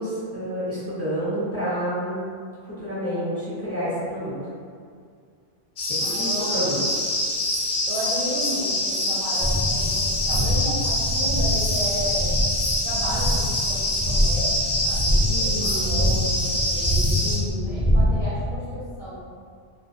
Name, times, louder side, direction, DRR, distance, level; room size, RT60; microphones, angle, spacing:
voice 1, 0.0-2.2 2.6-4.3 5.9-6.8 15.3-16.2 17.2-18.0, equal, 15° left, -11 dB, 0.6 m, -29 dB
sound 1, 5.8-17.4, left 1 dB, 55° left, 0.6 m, -25 dB
voice 2, 6.0-6.7 7.9-12.4 12.8-14.5 14.8-19.2, right 1 dB, 65° right, -10 dB, 0.3 m, -33 dB
sound 2, 9.4-18.5, equal, 25° right, 0.7 m, -25 dB
2.3 x 2.1 x 2.6 m, 2.1 s
omnidirectional pair, 1.2 m